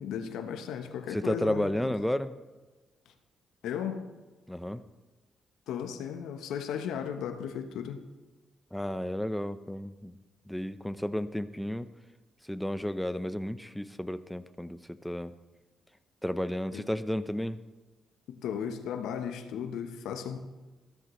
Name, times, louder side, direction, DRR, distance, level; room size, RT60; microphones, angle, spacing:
voice 1, 0.0-1.9 3.6-4.1 5.7-8.0 16.7-16.8 18.3-20.4, left 8 dB, 80° left, 7 dB, 1.1 m, -35 dB
voice 2, 1.1-2.3 4.5-4.8 8.7-10.1 10.5-11.9 12.5-15.3 16.2-17.6, equal, 5° left, 12 dB, 0.8 m, -32 dB
16.0 x 13.5 x 3.3 m, 1.3 s
hypercardioid pair, 50°, 0 cm